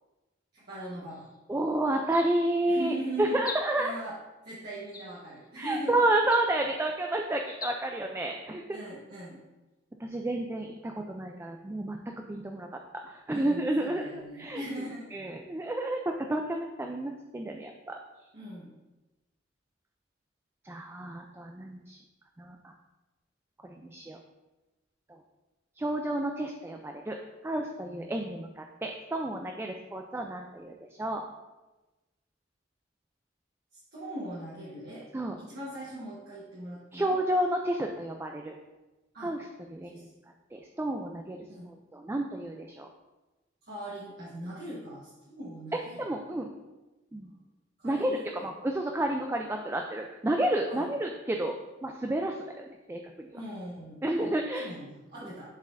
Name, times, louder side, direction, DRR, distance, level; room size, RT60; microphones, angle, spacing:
voice 1, 0.5-1.3 2.7-3.4 3.8-4.1 4.4-6.1 8.7-9.4 13.3-15.1 18.3-18.7 33.7-35.0 35.4-37.2 39.1-39.3 39.8-40.1 41.5-41.7 43.6-46.0 47.8-48.5 50.7-50.9 53.3-54.3 54.6-55.4, right 1 dB, 55° right, -9 dB, 1.3 m, -40 dB
sound 1, 1.1-1.4 2.0-2.6 3.4-4.0 4.9-5.5 6.2-6.8 7.5-7.8, left 3 dB, 20° left, 0.8 m, -43 dB
voice 2, 1.5-3.9 5.6-8.8 10.0-12.0 12.3-12.7 13.1-14.1 14.4-14.6 15.1-16.0 16.3-18.0 20.6-22.0 22.4-22.7 23.6-24.2 25.8-27.2 27.4-31.2 35.1-35.3 36.9-38.5 39.2-40.1 40.5-41.4 41.6-42.9 46.0-46.5 47.1-47.3 47.8-51.6 51.8-53.3 54.0-54.7, right 1 dB, 15° right, 2 dB, 0.4 m, -30 dB
10.5 x 4.2 x 2.6 m, 1.1 s
head